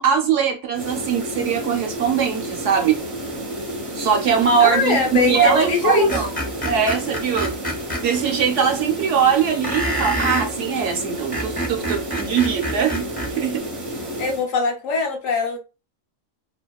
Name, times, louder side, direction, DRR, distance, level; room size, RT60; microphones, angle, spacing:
voice 1, 0.0-3.0 3.9-6.3 6.6-7.5 8.0-13.1 13.3-13.6, right 7 dB, 70° right, 0.8 m, -21 dB
sound 1, 0.7-14.5, equal, 35° right, 0.6 m, -31 dB
voice 2, 4.6-6.2 14.2-15.6, left 5 dB, 75° left, 1.0 m, -22 dB
Screech, 6.1-8.0 9.6-10.5 11.1-13.3, right 1 dB, 10° left, 0.4 m, -26 dB
2.7 x 2.2 x 2.2 m
omnidirectional pair, 1.4 m